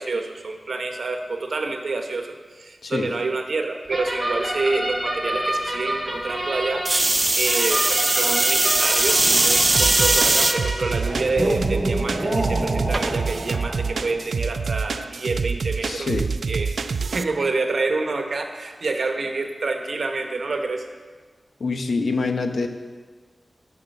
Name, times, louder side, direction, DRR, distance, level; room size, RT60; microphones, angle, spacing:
voice 1, 0.0-7.1 7.4-16.1 16.5-16.8 17.1-20.9, right 3 dB, 65° right, 5 dB, 1.0 m, -27 dB
sound 1, 3.9-14.2, right 1 dB, 15° right, 2.2 m, -28 dB
sound 2, 6.8-10.5 11.2-11.7 12.9-13.0, right 2 dB, 30° right, 0.6 m, -19 dB
sound 3, 9.7-17.2, right 5 dB, 90° right, 0.3 m, -27 dB
voice 2, 15.8-16.3 21.6-22.7, left 3 dB, 75° left, 6 dB, 0.9 m, -25 dB
10.5 x 5.6 x 6.5 m, 1.5 s
wide cardioid pair, 100°, 0 cm